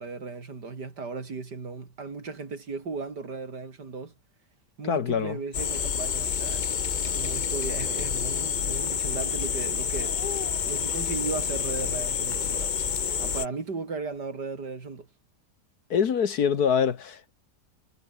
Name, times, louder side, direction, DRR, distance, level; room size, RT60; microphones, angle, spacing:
voice 1, 0.0-4.1 4.8-6.6 7.1-10.2 10.7-12.8 13.2-15.1, right 4 dB, 80° right, 3.9 m, -36 dB
voice 2, 4.9-5.4 15.9-17.3, left 7 dB, 65° left, 1.9 m, -24 dB
sound 1, 5.5-13.5, left 7 dB, 45° left, 0.6 m, -28 dB
omnidirectional pair, 1.8 m